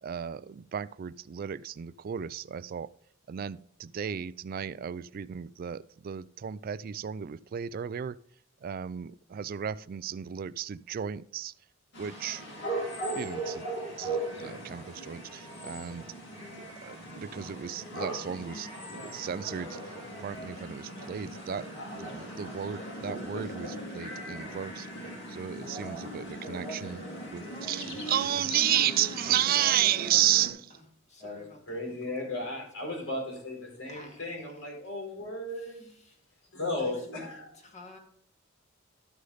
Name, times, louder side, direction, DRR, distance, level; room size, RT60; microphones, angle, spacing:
voice 1, 0.0-2.9 3.3-8.2 8.6-11.5 12.0-12.4 13.1-13.7 14.0-16.1 16.6-19.8 20.2-21.7 21.9-24.9 25.3-27.0 27.3-30.7, right 11 dB, 45° right, 19 dB, 0.3 m, -33 dB
sound 1, 11.9-30.5, right 1 dB, 60° left, 3.1 m, -39 dB
voice 2, 27.5-28.3 28.6-29.8 30.7-30.8 31.1-33.2 33.9-34.7 35.5-36.2 36.8-38.0, equal, 35° left, 2 dB, 2.0 m, -48 dB
voice 3, 31.7-35.9 36.5-37.6, left 2 dB, 85° left, 0 dB, 4.9 m, -36 dB
12.5 x 6.4 x 3.9 m, 0.62 s
head